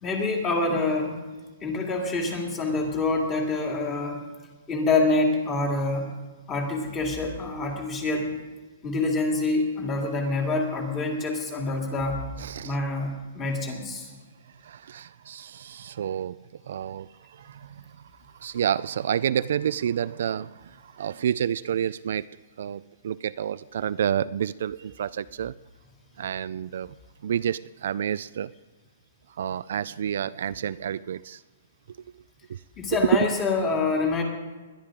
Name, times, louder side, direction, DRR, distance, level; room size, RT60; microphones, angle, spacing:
voice 1, 0.0-1.2 1.6-4.2 4.7-6.1 6.5-8.3 8.8-12.2 12.6-14.1 32.8-34.2, left 3 dB, 15° left, 1 dB, 2.2 m, -26 dB
voice 2, 12.4-12.7 14.5-16.4 16.7-22.3 22.6-25.5 26.2-26.9 27.2-28.5 29.4-31.4 31.9-32.0 32.5-32.6 32.9-33.3 33.6-33.7, right 9 dB, 55° right, 15 dB, 0.3 m, -29 dB
20.5 x 11.5 x 3.7 m, 1.3 s
hypercardioid pair, 170°, 0 cm